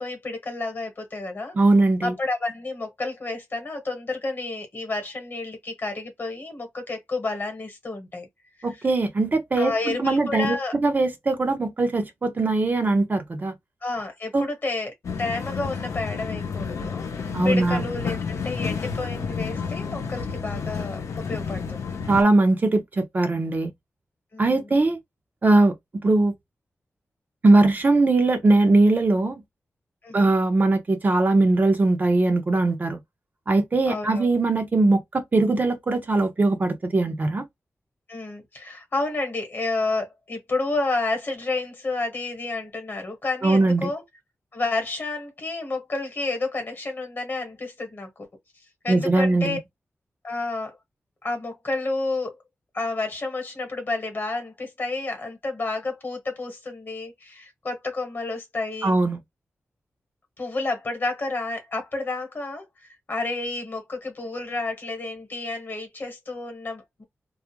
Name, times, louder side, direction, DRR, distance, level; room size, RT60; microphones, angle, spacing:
voice 1, 0.0-1.6 2.0-8.3 8.7-8.8 9.6-10.7 13.8-21.0 21.3-22.0 24.3-24.7 30.0-30.3 33.9-34.3 38.1-44.0 44.5-48.1 48.8-49.6 50.2-50.8 51.2-52.4 52.7-59.0 60.4-62.7 63.1-67.0, left 3 dB, 45° left, 1.0 m, -30 dB
voice 2, 1.6-2.1 8.6-10.6 10.8-13.5 14.3-14.4 17.3-17.8 22.1-23.7 24.4-25.0 25.4-25.7 26.0-26.3 27.4-29.4 30.1-33.0 33.5-37.4 43.4-43.9 48.9-49.6 58.8-59.2, right 2 dB, 40° right, 0.5 m, -20 dB
sound 1, 15.0-22.2, left 5 dB, 85° left, 0.5 m, -31 dB
2.4 x 2.0 x 2.9 m
wide cardioid pair, 110°, 5 cm